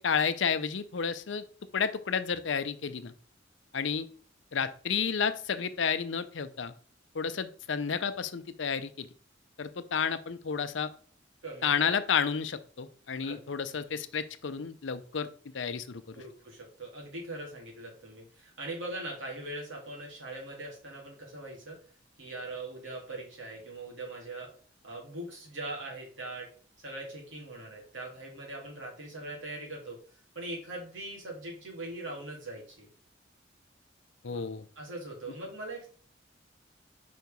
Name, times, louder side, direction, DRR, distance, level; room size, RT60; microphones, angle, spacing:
voice 1, 0.0-1.4 1.7-3.1 3.7-4.1 4.5-6.7 7.1-9.1 9.6-10.9 11.6-16.2 34.2-34.7, left 6 dB, 70° left, 12 dB, 0.6 m, -31 dB
voice 2, 11.4-11.9 13.2-13.4 16.1-21.8 22.2-24.5 24.8-26.5 26.8-30.0 30.3-32.9 34.3-34.4 34.8-35.9, right 2 dB, 75° right, -2 dB, 3.0 m, -41 dB
5.2 x 4.7 x 5.2 m, 0.44 s
head